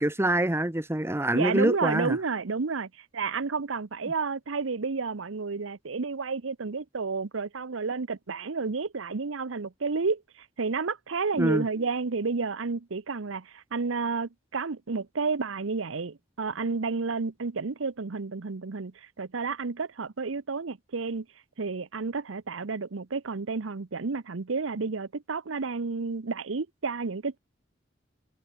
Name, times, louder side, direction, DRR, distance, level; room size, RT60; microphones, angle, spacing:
voice 1, 0.0-2.2 11.4-11.6, right 1 dB, 15° right, 1.0 m, -25 dB
voice 2, 1.3-21.3 21.6-27.4, right 4 dB, 90° right, 0.8 m, -31 dB
head